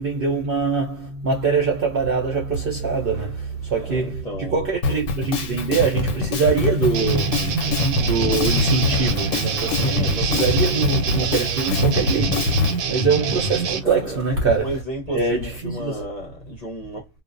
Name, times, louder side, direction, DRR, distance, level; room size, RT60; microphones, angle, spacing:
voice 1, 0.0-14.8 15.1-16.1, right 4 dB, 55° right, 0.7 m, -23 dB
voice 2, 3.7-4.5 9.8-10.6 13.8-14.2 14.6-17.1, right 1 dB, 35° left, 0.8 m, -33 dB
Drum kit, 4.8-12.8, left 3 dB, 65° left, 1.0 m, -23 dB
sound 1, 6.9-13.8, right 5 dB, 75° right, 1.0 m, -26 dB
2.4 x 2.1 x 2.5 m
omnidirectional pair, 1.5 m